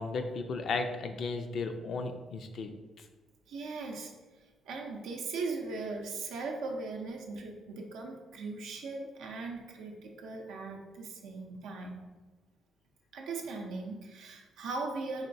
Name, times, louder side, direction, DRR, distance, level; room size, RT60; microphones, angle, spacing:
voice 1, 0.0-2.7, left 3 dB, 60° left, 6 dB, 0.4 m, -34 dB
voice 2, 3.5-4.1 4.7-12.0 13.1-15.3, right 3 dB, 85° right, 1 dB, 0.5 m, -39 dB
4.1 x 3.0 x 2.6 m, 1.2 s
cardioid pair, 90°, 0 cm